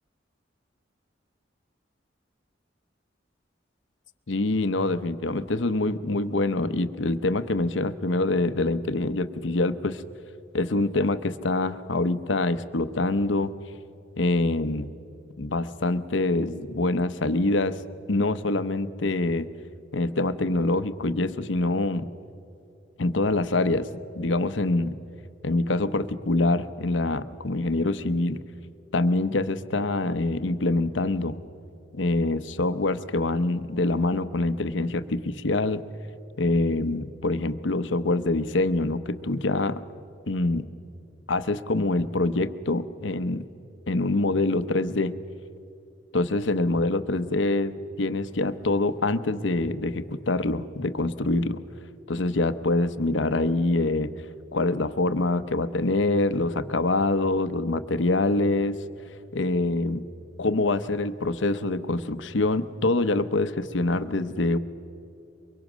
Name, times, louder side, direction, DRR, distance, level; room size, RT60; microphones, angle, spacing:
voice 1, 4.3-10.0 10.5-13.5 14.2-14.9 15.4-17.8 18.1-19.5 19.9-22.1 23.0-24.9 25.4-28.4 28.9-31.4 31.9-35.8 36.4-39.8 40.3-40.7 41.3-43.5 43.9-45.1 46.1-51.6 52.1-54.1 54.5-58.8 59.3-60.0 60.4-64.6, left 2 dB, 85° left, 12 dB, 0.9 m, -25 dB
23.5 x 22.5 x 6.2 m, 2.7 s
head